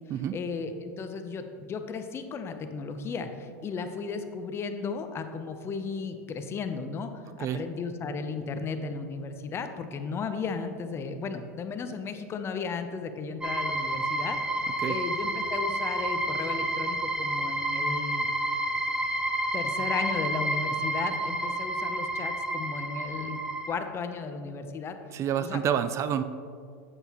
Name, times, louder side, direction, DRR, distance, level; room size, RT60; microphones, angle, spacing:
voice 1, 0.3-7.1 7.4-14.4 14.9-18.3 19.5-23.4 23.6-25.0 25.4-25.6, left 5 dB, 30° left, 8 dB, 0.7 m, -35 dB
sound 1, 13.4-23.7, right 1 dB, 10° right, 0.8 m, -30 dB
voice 2, 25.1-26.2, right 9 dB, 35° right, 11 dB, 0.4 m, -28 dB
7.9 x 7.9 x 3.0 m, 2.2 s
hypercardioid pair, 100°, 8 cm